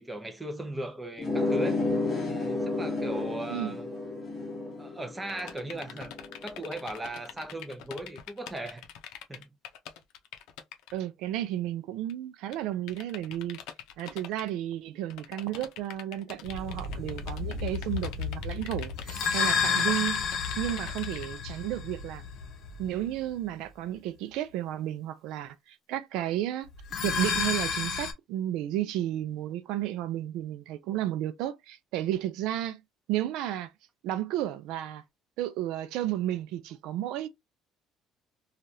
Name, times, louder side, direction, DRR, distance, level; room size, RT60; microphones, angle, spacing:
voice 1, 0.0-1.8 2.3-3.9 4.8-6.1 6.4-8.8 9.3-9.5, right 1 dB, 10° right, 0.6 m, -38 dB
sound 1, 1.2-6.5, left 2 dB, 20° left, 1.0 m, -31 dB
sound 2, 5.3-11.0 12.1-12.2 12.5-12.6 12.9-14.5 15.1-21.3, left 10 dB, 80° left, 0.6 m, -44 dB
voice 2, 10.9-13.6 14.0-22.2 22.8-26.7 27.0-32.8 33.1-33.7 34.0-35.0 35.4-37.3, right 13 dB, 75° right, 0.4 m, -33 dB
sound 3, 16.4-23.1 26.8-28.1, left 6 dB, 45° left, 0.8 m, -31 dB
3.2 x 2.4 x 2.7 m
cardioid pair, 165°, 0 cm